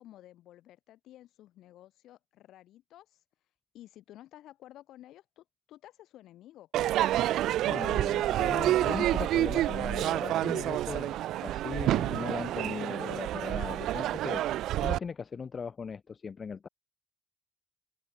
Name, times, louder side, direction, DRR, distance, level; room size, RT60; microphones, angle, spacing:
voice 1, 0.0-3.2 3.7-6.9, left 13 dB, 90° left, 2.0 m, -53 dB
Crowd / Fireworks, 6.7-15.0, right 13 dB, 90° right, 0.3 m, -28 dB
voice 2, 7.6-14.4 14.8-16.7, left 6 dB, 60° left, 0.7 m, -39 dB
open air
supercardioid pair, 45°, 0 cm